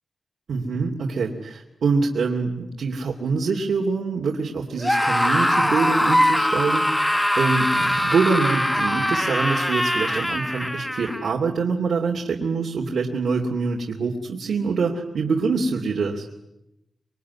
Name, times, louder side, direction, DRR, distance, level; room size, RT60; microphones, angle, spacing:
voice 1, 0.5-16.3, right 4 dB, 75° right, 0 dB, 3.0 m, -25 dB
Screaming, 4.8-11.3, equal, 5° left, 1.1 m, -22 dB
26.5 x 23.0 x 9.8 m, 0.89 s
wide cardioid pair, 165°, 0 cm